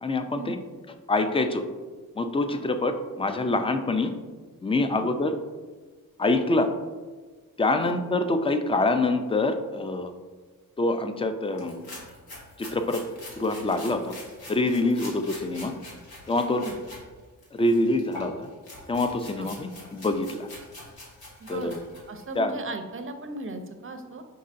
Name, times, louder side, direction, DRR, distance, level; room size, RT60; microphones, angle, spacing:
voice 1, 0.0-0.6 1.1-1.6 2.2-4.1 4.6-5.4 6.2-6.7 7.6-10.1 10.8-11.8 12.6-13.0 13.4-14.1 14.5-15.7 16.3-16.6 17.5-18.5 18.9-20.5 21.5-21.8 22.4-22.5, left 2 dB, 15° left, 8 dB, 0.4 m, -25 dB
sound 1, 11.5-17.0 17.4-22.4, left 2 dB, 80° left, 1.4 m, -44 dB
voice 2, 21.4-21.8 22.1-24.2, right 2 dB, 35° right, 7 dB, 0.6 m, -36 dB
5.3 x 3.8 x 2.5 m, 1.4 s
cardioid pair, 65°, 37 cm